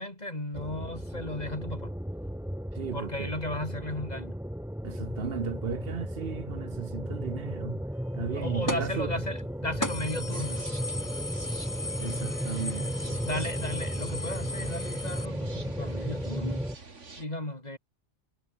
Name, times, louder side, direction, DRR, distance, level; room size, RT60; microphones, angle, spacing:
voice 1, 0.0-1.9 2.9-4.3 8.3-10.7 13.2-16.6 17.2-17.8, left 1 dB, 35° left, 4.1 m, -35 dB
sound 1, 0.5-16.8, equal, ahead, 2.1 m, -35 dB
voice 2, 2.7-3.3 4.8-7.8 8.1-9.1 12.0-13.3, right 7 dB, 55° right, 1.3 m, -35 dB
sound 2, 8.7-9.0 9.4-9.5 9.8-15.3, left 2 dB, 15° left, 1.2 m, -37 dB
sound 3, 10.3-17.3, right 4 dB, 85° right, 3.0 m, -48 dB
omnidirectional pair, 1.2 m